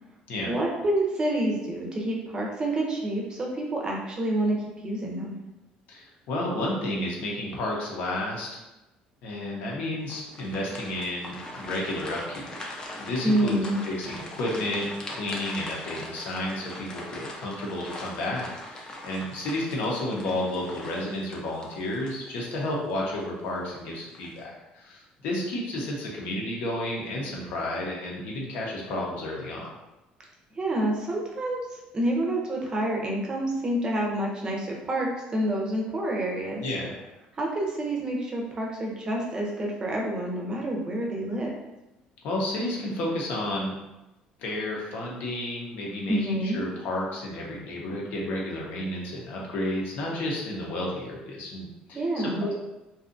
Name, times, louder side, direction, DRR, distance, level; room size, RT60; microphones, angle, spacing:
voice 1, 0.5-4.6 4.8-5.4 13.2-13.8 30.5-31.6 31.9-36.6 37.3-41.5 46.1-46.6 51.9-52.5, right 1 dB, 25° right, -1 dB, 0.6 m, -28 dB
voice 2, 5.9-8.5 9.2-12.5 13.0-13.6 13.9-29.7 36.6-36.9 42.2-43.8 44.4-52.5, left 1 dB, 70° left, -3 dB, 0.8 m, -31 dB
sound 1, 10.1-22.7 23.2-23.3 23.9-24.4, left 1 dB, 25° left, 0.5 m, -41 dB
2.6 x 2.3 x 2.5 m, 0.98 s
cardioid pair, 125°, 3 cm